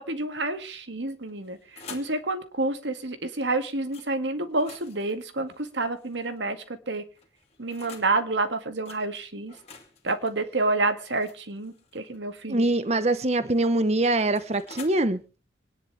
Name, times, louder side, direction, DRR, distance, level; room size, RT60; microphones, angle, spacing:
voice 1, 0.0-7.0 7.6-9.5 10.0-12.7, right 2 dB, 85° right, 8 dB, 2.0 m, -29 dB
sound 1, 1.2-2.2 3.9-4.1 4.5-6.4 7.2-8.1 8.9-9.0 9.5-12.2 13.3-14.9, left 5 dB, 35° left, 2.6 m, -48 dB
voice 2, 12.5-15.2, right 2 dB, 35° right, 12 dB, 1.0 m, -23 dB
26.0 x 10.5 x 3.3 m, 0.33 s
head